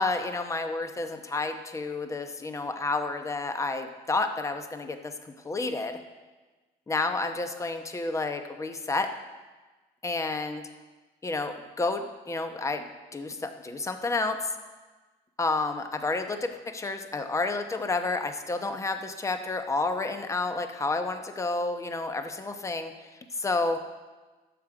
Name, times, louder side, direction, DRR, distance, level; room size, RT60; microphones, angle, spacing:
voice 1, 0.0-6.0 6.9-9.1 10.0-10.6 11.2-12.8 13.1-14.4 15.4-22.9 23.4-23.8, left 3 dB, 20° left, 7 dB, 0.9 m, -30 dB
11.5 x 7.4 x 4.9 m, 1.3 s
cardioid pair, 110°, 17 cm